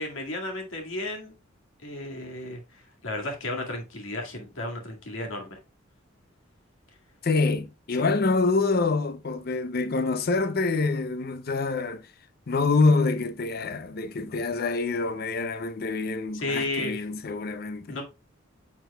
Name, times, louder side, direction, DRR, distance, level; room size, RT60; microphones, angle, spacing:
voice 1, 0.0-1.3 1.8-2.6 3.0-5.6 8.0-8.1 16.3-17.0 17.9-18.0, left 2 dB, 85° left, 1.9 m, -33 dB
voice 2, 7.2-12.1 12.5-18.0, left 3 dB, 50° left, 0.5 m, -26 dB
9.1 x 6.1 x 2.2 m
head